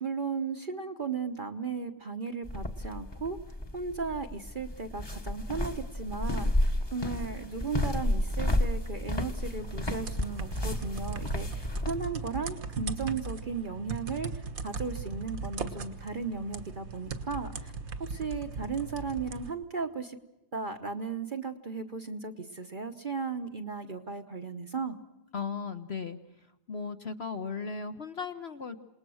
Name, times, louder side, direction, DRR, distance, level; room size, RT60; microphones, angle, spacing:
voice 1, 0.0-3.4 3.7-17.7 18.1-20.2 20.5-25.0, right 4 dB, 35° right, 7 dB, 1.1 m, -36 dB
sound 1, 2.4-12.0, left 1 dB, 15° left, 1.2 m, -32 dB
sound 2, 9.5-19.5, right 4 dB, 60° right, 1.8 m, -38 dB
voice 2, 25.3-26.2 26.7-28.8, left 5 dB, 45° left, 8 dB, 1.0 m, -36 dB
28.0 x 19.5 x 6.4 m, 0.95 s
omnidirectional pair, 1.7 m